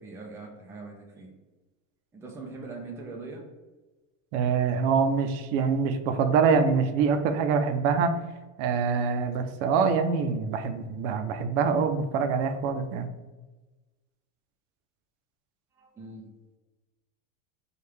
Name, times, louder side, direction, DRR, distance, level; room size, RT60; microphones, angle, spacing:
voice 1, 0.0-1.3 2.1-3.4 15.8-16.3, right 3 dB, 5° right, 0 dB, 0.4 m, -41 dB
voice 2, 4.3-8.2 8.6-13.1, right 5 dB, 70° right, 8 dB, 0.6 m, -25 dB
4.5 x 2.4 x 3.2 m, 1.2 s
supercardioid pair, 135°, 39 cm